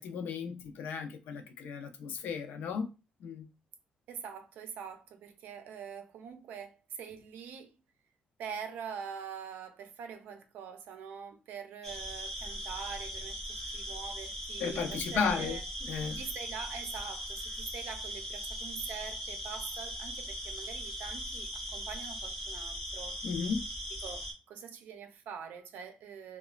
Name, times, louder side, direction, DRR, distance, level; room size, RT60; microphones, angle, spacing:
voice 1, 0.0-2.9 3.2-3.5 14.6-15.6 15.9-16.2 23.2-23.6, left 5 dB, 80° left, 0.4 m, -34 dB
voice 2, 4.1-7.7 8.4-15.6 16.1-23.2 24.0-26.4, right 7 dB, 85° right, 0.5 m, -44 dB
sound 1, 11.8-24.3, equal, 15° left, 1.0 m, -39 dB
2.9 x 2.1 x 2.3 m
cardioid pair, 170°, 3 cm